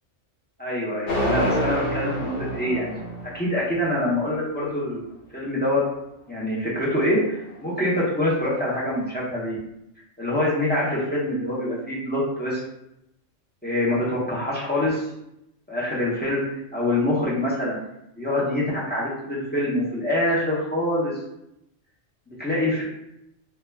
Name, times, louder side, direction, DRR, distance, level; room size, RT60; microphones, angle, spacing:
voice 1, 0.6-3.0 3.3-5.0 5.3-5.8 6.3-9.6 10.2-12.6 13.6-15.0 15.7-16.4 16.7-17.8 18.2-21.1 22.3-22.8, left 1 dB, 15° left, -7 dB, 0.4 m, -25 dB
sound 1, 1.1-4.0, equal, 80° left, 1.0 m, -27 dB
2.2 x 2.2 x 3.1 m, 0.82 s
omnidirectional pair, 1.3 m